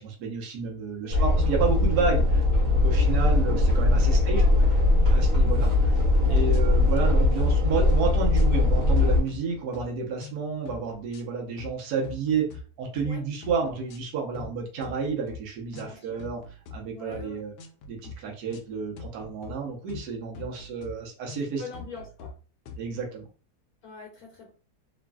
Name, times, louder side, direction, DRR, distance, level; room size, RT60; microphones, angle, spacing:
voice 1, 0.0-4.4 5.1-6.0 6.3-12.5 12.8-16.4 16.7-17.5 17.9-21.6 22.8-23.2, right 5 dB, 75° right, 0 dB, 1.2 m, -30 dB
voice 2, 1.0-1.3 4.1-4.7 6.2-6.4 13.1-13.2 15.8-16.2 16.9-17.4 21.4-22.3 23.8-24.5, left 5 dB, 70° left, 0 dB, 1.0 m, -43 dB
sound 1, 1.1-9.2, left 2 dB, 55° right, 1.4 m, -21 dB
sound 2, 6.0-6.2 6.5-7.1 7.4-7.6 7.9-9.0 9.3-9.9 10.2-10.4 10.7-11.2 11.6-11.8 12.0-12.6 13.0-13.2 13.4-14.0 14.3-14.5 14.8-15.4 15.7-16.8 17.1-17.3 17.6-18.2 18.5-18.7 19.0-19.5 19.9-20.1 20.3-20.9 21.3-21.5 21.7-22.3 22.7-22.8, left 4 dB, 85° left, 0.6 m, -42 dB
3.0 x 2.5 x 2.2 m, 0.36 s
omnidirectional pair, 1.8 m